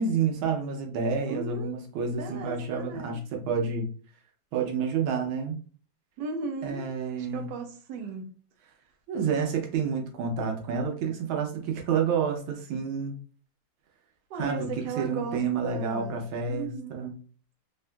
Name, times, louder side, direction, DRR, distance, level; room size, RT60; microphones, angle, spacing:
voice 1, 0.0-3.9 4.5-5.6 6.6-7.5 9.1-13.1 14.4-17.1, right 5 dB, 90° right, 1.5 m, -29 dB
voice 2, 1.3-1.8 2.2-3.2 6.2-6.8 7.2-8.3 14.3-16.2 16.5-17.1, right 4 dB, 70° right, 1.2 m, -36 dB
3.7 x 2.2 x 2.5 m
omnidirectional pair, 2.2 m